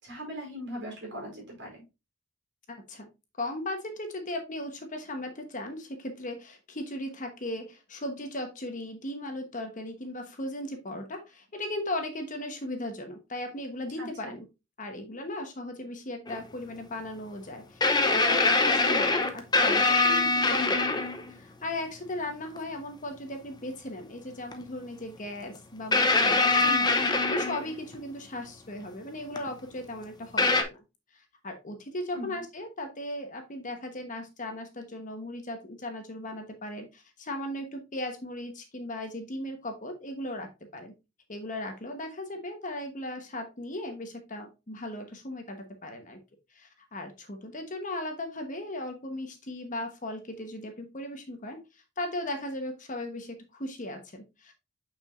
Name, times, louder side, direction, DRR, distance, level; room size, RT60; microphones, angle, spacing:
voice 1, 0.0-1.8 14.0-14.3 32.1-32.4, equal, 55° right, 0 dB, 4.5 m, -40 dB
voice 2, 2.7-3.1 3.4-14.5 14.8-21.0 21.3-30.8 31.1-40.9 41.3-46.2 46.5-54.5, left 1 dB, 35° left, 5 dB, 1.1 m, -37 dB
sound 1, 16.3-16.4 17.8-21.3 22.6-22.7 24.5-24.6 25.9-28.0 29.4-29.5 30.4-30.6, left 3 dB, 20° left, 0.7 m, -23 dB
6.8 x 6.0 x 2.5 m, 0.26 s
head